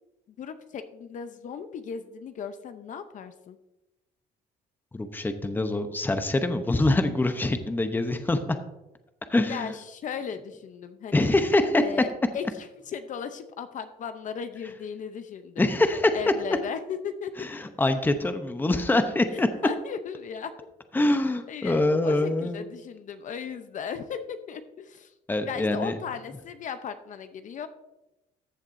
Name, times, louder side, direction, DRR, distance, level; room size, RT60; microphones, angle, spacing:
voice 1, 0.4-3.6 9.5-11.3 11.8-12.4 12.9-15.6 16.1-17.5 19.3-20.5 21.5-25.1 25.4-27.7, left 7 dB, 50° left, 9 dB, 0.7 m, -36 dB
voice 2, 4.9-8.6 9.3-9.8 11.1-11.8 15.6-16.3 17.4-19.5 20.9-22.7 25.3-26.0, left 2 dB, 10° left, 8 dB, 0.8 m, -24 dB
14.0 x 7.1 x 2.6 m, 0.97 s
cardioid pair, 110°, 17 cm